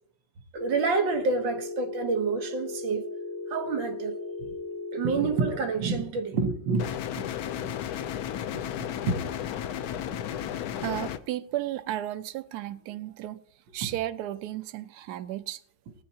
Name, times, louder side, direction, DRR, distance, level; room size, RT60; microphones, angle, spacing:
voice 1, 0.5-3.0 3.5-4.5 4.9-6.9 7.2-7.3 7.6-7.7 8.5-9.2 13.8-13.9, right 4 dB, 65° right, 1.8 m, -28 dB
Telephone, 0.6-5.6, left 2 dB, 20° left, 0.4 m, -36 dB
sound 1, 6.8-11.2, left 10 dB, 85° left, 0.8 m, -33 dB
voice 2, 10.8-13.4 13.7-15.6, right 13 dB, 80° right, 0.9 m, -34 dB
19.0 x 9.5 x 2.8 m
omnidirectional pair, 2.4 m